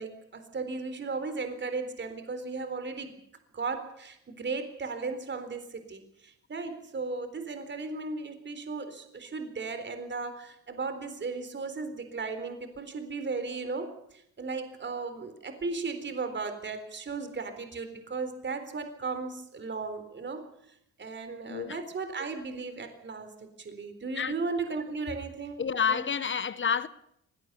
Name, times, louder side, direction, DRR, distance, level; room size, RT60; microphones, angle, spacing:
voice 1, 0.0-3.2 3.5-13.9 14.4-20.4 21.0-25.6 25.9-26.0, right 4 dB, 35° right, 4.0 m, -36 dB
voice 2, 21.5-21.8 24.2-24.3 25.6-26.9, left 7 dB, 40° left, 1.3 m, -29 dB
24.0 x 18.0 x 6.9 m
cardioid pair, 90°, 30 cm